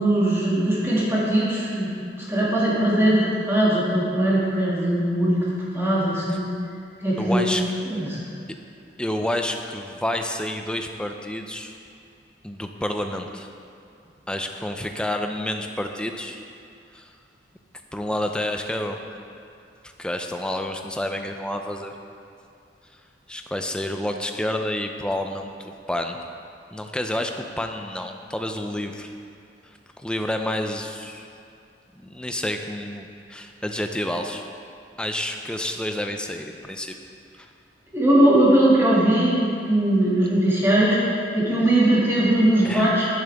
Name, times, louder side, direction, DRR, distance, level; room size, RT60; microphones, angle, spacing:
voice 1, 0.0-1.9 2.3-5.4 5.7-6.5 7.0-7.5 7.9-8.2 37.9-41.0 41.3-43.1, right 1 dB, 15° right, -8 dB, 2.2 m, -20 dB
voice 2, 7.2-7.6 9.0-11.7 12.4-13.5 14.3-16.4 16.9-17.1 17.9-19.0 20.0-21.9 23.3-26.2 26.7-29.1 29.6-31.3 31.9-34.5 35.0-36.9 37.4-37.5 42.6-42.9, left 1 dB, 5° left, 4 dB, 0.5 m, -29 dB
10.5 x 9.9 x 3.5 m, 2.5 s
head